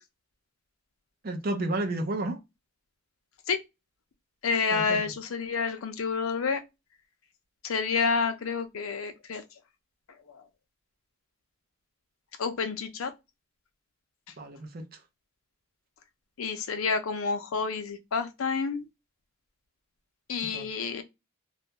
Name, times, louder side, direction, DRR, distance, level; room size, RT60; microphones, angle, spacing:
voice 1, 1.2-2.4 4.7-5.0 14.4-14.8 20.5-20.7, right 2 dB, 45° right, 0.5 m, -31 dB
voice 2, 4.4-6.6 7.6-9.4 12.4-13.1 16.4-18.8 20.3-21.0, left 5 dB, 80° left, 0.5 m, -29 dB
2.3 x 2.1 x 2.7 m
head